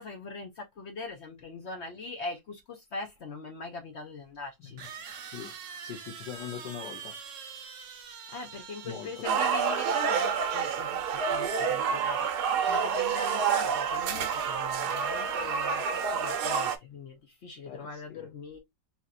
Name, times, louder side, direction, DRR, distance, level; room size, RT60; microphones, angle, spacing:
voice 1, 0.0-4.8 8.3-11.0 11.3-18.6, left 4 dB, 60° left, 0.7 m, -41 dB
sound 1, 3.2-3.3 4.8-10.9, right 6 dB, 55° right, 0.9 m, -45 dB
voice 2, 4.6-5.0 5.3-7.1 8.8-9.3 14.8-15.0 17.6-18.3, left 9 dB, 80° left, 1.6 m, -43 dB
sound 2, 9.2-16.8, right 6 dB, 70° right, 1.2 m, -28 dB
3.9 x 2.9 x 2.4 m
omnidirectional pair, 1.9 m